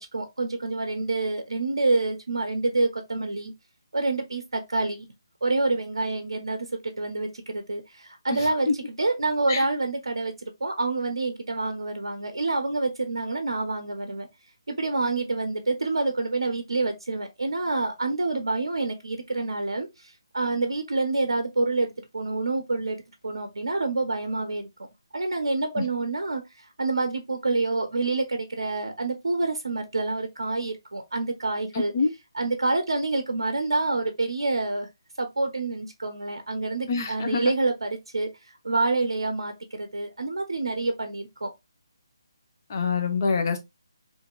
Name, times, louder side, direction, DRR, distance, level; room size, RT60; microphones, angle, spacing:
voice 1, 0.0-3.5 3.9-5.1 5.4-6.7 7.0-14.3 14.7-19.9 20.3-23.0 23.2-24.7 25.1-26.4 26.8-31.9 32.3-34.9 35.2-38.3 38.6-41.5, right 3 dB, 75° right, 0.5 m, -27 dB
voice 2, 31.7-32.1 36.9-37.4 42.7-43.6, left 4 dB, 40° left, 0.7 m, -25 dB
2.8 x 2.5 x 2.3 m
figure-of-eight pair, 150°, 3 cm